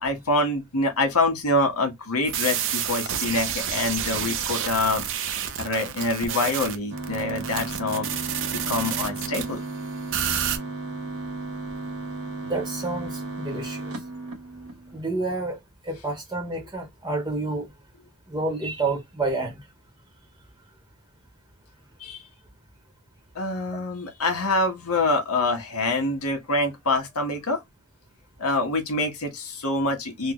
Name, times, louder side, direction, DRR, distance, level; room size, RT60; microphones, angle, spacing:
voice 1, 0.0-5.1 5.6-8.1 8.7-9.6 22.0-22.2 23.3-27.6 28.4-30.3, left 2 dB, 85° left, 1.5 m, -25 dB
sound 1, 2.2-9.5 10.1-10.6, right 8 dB, 60° right, 0.7 m, -29 dB
sound 2, 6.9-15.0, right 3 dB, 85° right, 1.1 m, -34 dB
voice 2, 12.4-14.0 14.9-15.6 15.8-17.7 18.3-19.6, right 2 dB, 15° right, 0.9 m, -29 dB
3.9 x 2.1 x 3.1 m
head